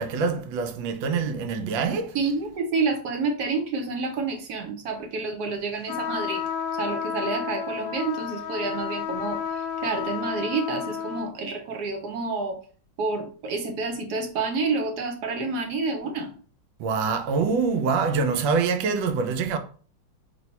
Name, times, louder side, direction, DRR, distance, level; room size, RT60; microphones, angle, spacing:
voice 1, 0.0-2.2 16.8-19.6, right 5 dB, 85° right, 1.3 m, -25 dB
voice 2, 2.1-6.4 6.8-12.6 13.0-16.3, right 4 dB, 65° right, 1.1 m, -29 dB
sound 1, 5.9-11.3, left 7 dB, 90° left, 1.3 m, -31 dB
3.2 x 2.7 x 4.1 m
omnidirectional pair, 2.0 m